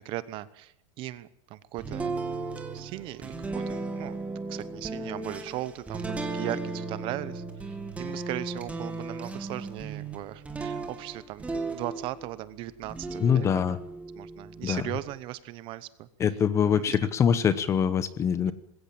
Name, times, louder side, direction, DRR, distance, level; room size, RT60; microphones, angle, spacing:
voice 1, 0.0-2.2 2.7-13.8 14.1-16.1 16.7-16.9, right 15 dB, 30° right, 16 dB, 0.9 m, -38 dB
sound 1, 1.8-12.4 12.8-15.2, right 3 dB, 10° right, 2.1 m, -36 dB
voice 2, 13.2-13.8 14.6-14.8 16.2-18.5, left 7 dB, 15° left, 15 dB, 0.8 m, -24 dB
21.0 x 17.0 x 8.8 m, 0.75 s
supercardioid pair, 170°, 16 cm